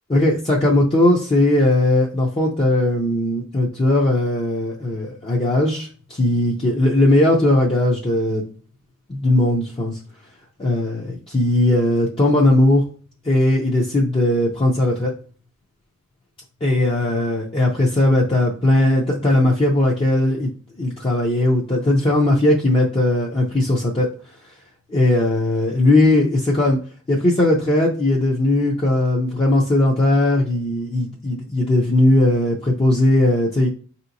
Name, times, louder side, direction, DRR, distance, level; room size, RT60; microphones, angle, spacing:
voice 1, 0.1-8.4 9.1-10.0 10.6-12.8 13.2-15.1 16.6-20.5 20.8-24.1 24.9-26.8 27.1-33.7, left 1 dB, 25° left, -3 dB, 0.5 m, -18 dB
4.7 x 2.8 x 2.6 m, 0.42 s
head